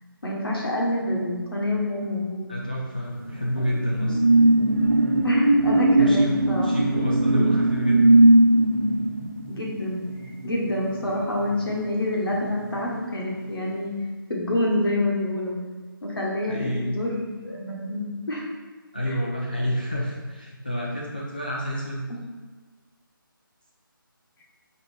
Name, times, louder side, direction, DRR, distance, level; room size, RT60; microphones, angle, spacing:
voice 1, 0.2-2.5 5.2-6.8 7.2-7.4 9.5-13.9 14.3-15.6 16.0-18.5 19.1-19.2, left 1 dB, 85° left, -3 dB, 1.3 m, -27 dB
voice 2, 2.5-4.2 6.0-6.3 6.6-8.2 16.5-17.0 18.9-22.0, equal, 25° left, -5 dB, 0.3 m, -28 dB
sound 1, 3.1-12.1 12.4-12.7, right 1 dB, 40° right, 0.7 m, -20 dB
4.1 x 3.2 x 3.2 m, 1.4 s
figure-of-eight pair, 175°, 12 cm